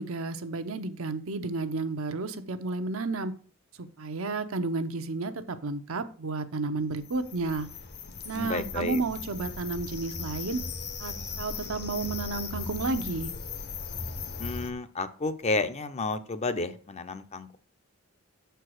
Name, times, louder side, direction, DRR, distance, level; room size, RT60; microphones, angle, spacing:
voice 1, 0.0-3.3 3.8-7.7 8.2-10.6 11.0-13.3, right 3 dB, 75° right, 9 dB, 0.7 m, -32 dB
sound 1, 6.9-14.7, left 5 dB, 50° left, 0.9 m, -38 dB
voice 2, 8.3-9.0 14.4-17.6, left 3 dB, 30° left, 10 dB, 0.6 m, -31 dB
7.0 x 4.6 x 6.3 m, 0.43 s
head